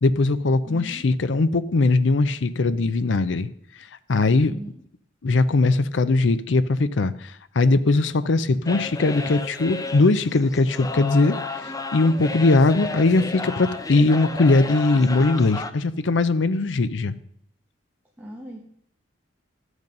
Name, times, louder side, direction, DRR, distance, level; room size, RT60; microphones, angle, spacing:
voice 1, 0.0-3.5 4.1-4.5 5.2-17.1, left 3 dB, 70° left, 13 dB, 0.6 m, -20 dB
voice 2, 0.7-1.0 4.4-4.8 18.2-18.7, equal, 10° right, -2 dB, 1.3 m, -39 dB
sound 1, 8.7-15.7, left 3 dB, 20° left, 0.6 m, -33 dB
12.0 x 8.1 x 5.3 m, 0.69 s
head